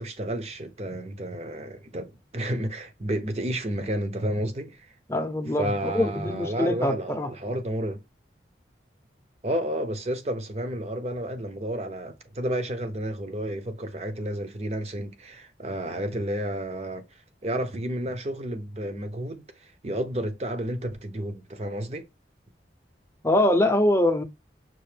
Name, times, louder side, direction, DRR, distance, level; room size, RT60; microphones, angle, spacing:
voice 1, 0.0-4.8 5.6-8.0 9.4-17.0 17.4-22.1, right 1 dB, 35° right, 0.7 m, -31 dB
voice 2, 5.1-7.3 23.2-24.2, left 1 dB, 15° left, 0.6 m, -23 dB
5.9 x 2.6 x 3.2 m
head